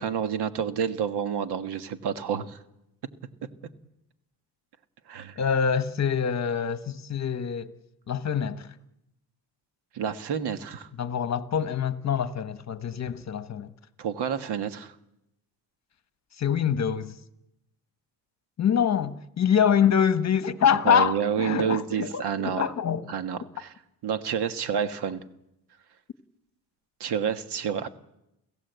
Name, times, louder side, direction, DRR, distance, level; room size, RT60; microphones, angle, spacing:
voice 1, 0.0-2.6 5.1-5.4 9.9-10.9 14.0-14.9 20.8-22.6 23.1-23.7 24.0-25.2 27.0-27.9, right 7 dB, 75° right, 1.5 m, -29 dB
voice 2, 5.4-7.7 8.1-8.7 11.0-13.7 16.4-17.1 18.6-23.1, left 8 dB, 40° left, 1.2 m, -25 dB
29.5 x 16.0 x 8.1 m
cardioid pair, 115°, 40 cm